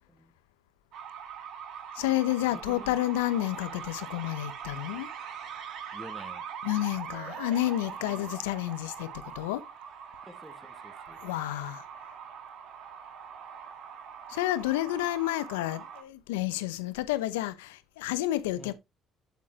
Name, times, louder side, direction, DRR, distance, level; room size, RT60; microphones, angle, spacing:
sound 1, 0.9-16.0, right 7 dB, 70° right, 1.7 m, -42 dB
voice 1, 2.0-5.1 6.6-9.1 9.3-9.6 11.2-11.8 14.3-18.7, left 15 dB, 90° left, 0.8 m, -30 dB
voice 2, 2.5-3.0 5.9-6.4 8.0-8.4 10.3-11.2 18.5-18.7, equal, 5° right, 1.6 m, -48 dB
8.8 x 7.2 x 2.9 m
hypercardioid pair, 60°, 0 cm